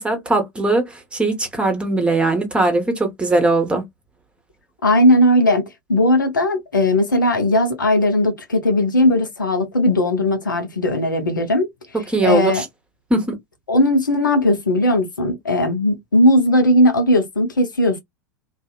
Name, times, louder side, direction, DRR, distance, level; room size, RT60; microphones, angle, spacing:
voice 1, 0.0-3.8 11.9-12.6 13.1-13.4, right 2 dB, 10° right, 1.1 m, -20 dB
voice 2, 4.8-5.6 5.9-11.7 12.2-12.6 13.7-18.0, left 1 dB, 85° left, 0.7 m, -17 dB
2.6 x 2.4 x 2.2 m
figure-of-eight pair, 85°, 10 cm